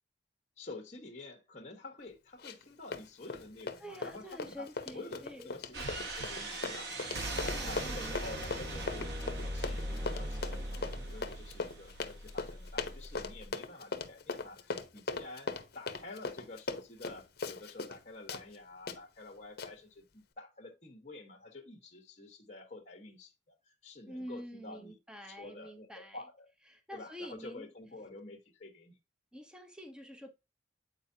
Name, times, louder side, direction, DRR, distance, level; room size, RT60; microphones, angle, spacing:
voice 1, 0.6-23.3 23.6-24.9 25.2-26.5 26.9-28.9, left 2 dB, 40° left, 1.3 m, -49 dB
Run, 2.4-2.7 2.9-18.0 18.3-18.4 18.9-19.0 19.6-19.7, left 3 dB, 60° left, 0.8 m, -39 dB
voice 2, 3.8-5.5 7.4-8.2 24.1-26.2 26.7-27.7 29.3-30.3, equal, 5° right, 0.8 m, -47 dB
sound 1, 5.7-13.5, right 1 dB, 65° right, 1.5 m, -40 dB
sound 2, 6.9-11.6, right 2 dB, 25° right, 0.5 m, -49 dB
8.9 x 4.5 x 2.8 m
head